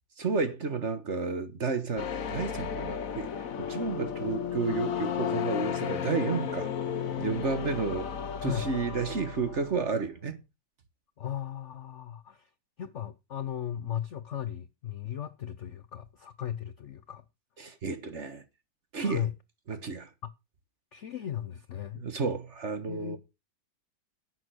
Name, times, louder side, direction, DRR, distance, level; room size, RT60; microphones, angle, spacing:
voice 1, 0.2-3.3 3.6-6.7 7.2-8.1 8.4-10.4 17.6-18.4 18.9-19.3 19.7-20.1 22.0-23.2, right 4 dB, 40° right, 1.5 m, -31 dB
sound 1, 2.0-9.9, left 8 dB, 50° left, 1.3 m, -34 dB
voice 2, 11.2-12.5 12.8-17.2 19.0-19.3 20.9-22.0 22.9-23.2, left 10 dB, 65° left, 0.7 m, -36 dB
11.0 x 7.9 x 6.2 m
omnidirectional pair, 2.1 m